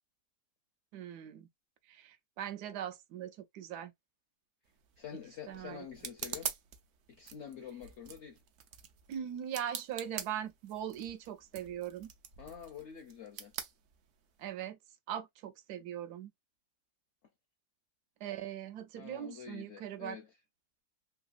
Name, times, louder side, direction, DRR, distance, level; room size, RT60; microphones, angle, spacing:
voice 1, 0.9-1.5 1.9-3.9 5.5-5.8 9.1-12.1 14.4-14.8 15.1-16.3 18.2-20.2, right 10 dB, 80° right, 1.2 m, -40 dB
sound 1, 4.7-14.5, right 8 dB, 65° right, 0.8 m, -46 dB
voice 2, 5.0-6.5 7.1-8.4 12.4-13.5 19.0-20.3, left 8 dB, 70° left, 0.7 m, -47 dB
3.3 x 2.8 x 2.3 m
omnidirectional pair, 1.7 m